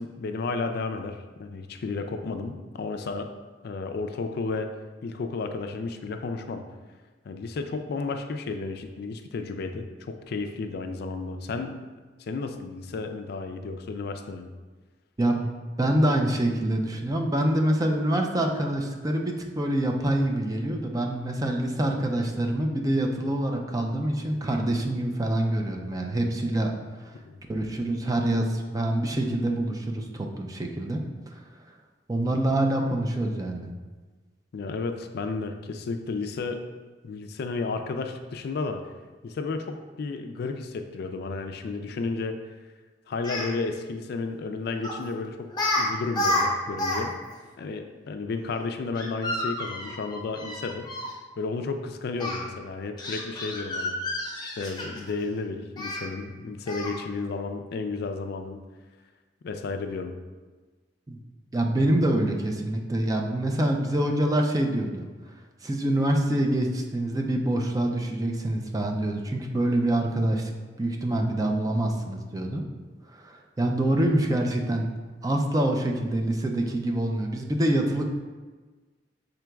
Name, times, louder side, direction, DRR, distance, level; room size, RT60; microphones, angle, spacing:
voice 1, 0.0-3.3 3.6-4.7 5.0-6.6 7.3-11.8 12.2-14.5 27.3-27.4 34.5-36.6 37.0-38.8 39.2-42.4 43.1-45.5 45.8-47.1 47.6-50.9 51.4-53.9 54.4-58.6 59.4-60.1, left 3 dB, 60° left, 7 dB, 0.3 m, -32 dB
voice 2, 15.2-15.5 15.8-26.7 27.5-31.4 32.1-33.7 61.1-61.2 61.5-65.1 65.6-72.6 73.1-74.9 75.2-78.1, right 1 dB, 20° right, 2 dB, 0.4 m, -26 dB
Speech, 43.1-43.5 44.8-45.0 45.5-45.8 46.1-47.0 47.3-47.4 49.0-51.1 52.2-52.4 53.0-55.1 55.8-56.0 56.7-57.0, left 2 dB, 25° left, 0.8 m, -30 dB
6.0 x 3.8 x 2.3 m, 1.3 s
head